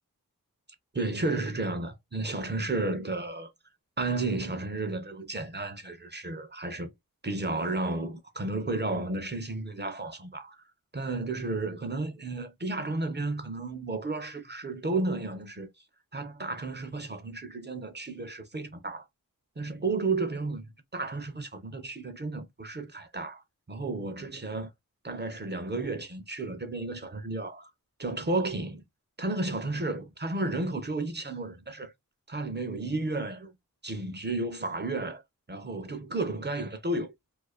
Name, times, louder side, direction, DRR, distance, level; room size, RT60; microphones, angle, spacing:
voice 1, 0.9-3.5 4.0-6.9 7.2-10.6 10.9-15.7 16.1-19.0 19.6-23.4 23.7-24.7 25.0-27.7 28.0-28.8 29.2-31.9 32.3-33.5 33.8-35.2 35.5-37.1, right 2 dB, 30° right, 0.5 m, -32 dB
2.4 x 2.2 x 2.3 m
wide cardioid pair, 55°, 35 cm